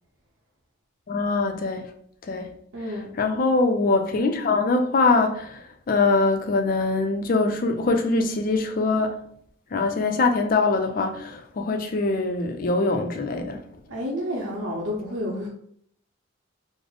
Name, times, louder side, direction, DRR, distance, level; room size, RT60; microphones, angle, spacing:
voice 1, 1.1-1.9 2.3-2.5 3.2-9.2 9.7-13.7, left 3 dB, 45° left, 0.4 m, -23 dB
voice 2, 2.7-3.1 13.9-15.5, equal, 85° right, 0.6 m, -30 dB
3.8 x 2.0 x 3.3 m
head